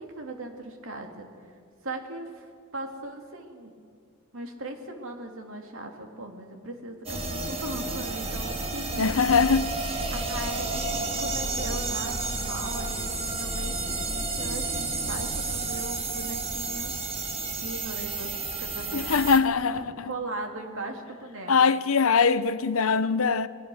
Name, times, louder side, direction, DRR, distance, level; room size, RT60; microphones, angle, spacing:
voice 1, 0.0-1.5 1.8-2.5 2.7-3.7 4.3-9.1 10.1-16.9 17.5-19.1 20.0-21.5, right 2 dB, 65° right, 2.8 m, -38 dB
sound 1, 7.1-19.4, right 3 dB, 30° right, 1.8 m, -31 dB
voice 2, 9.0-9.7 18.9-20.1 21.5-23.5, left 5 dB, 70° left, 0.8 m, -22 dB
27.0 x 20.0 x 6.4 m
head